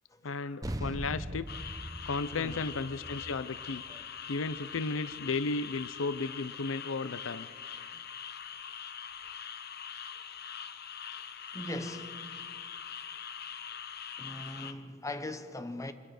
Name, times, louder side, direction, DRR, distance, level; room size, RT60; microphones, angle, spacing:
voice 1, 0.2-1.5 2.1-3.8 4.3-7.5, left 3 dB, 85° left, 0.6 m, -34 dB
sound 1, 0.6-5.4, right 1 dB, 20° right, 1.2 m, -41 dB
sound 2, 1.5-14.7, left 7 dB, 55° left, 1.0 m, -43 dB
voice 2, 2.3-2.7 3.9-4.1 11.5-12.3 14.2-15.9, left 1 dB, 15° left, 1.2 m, -40 dB
25.0 x 19.5 x 6.6 m
head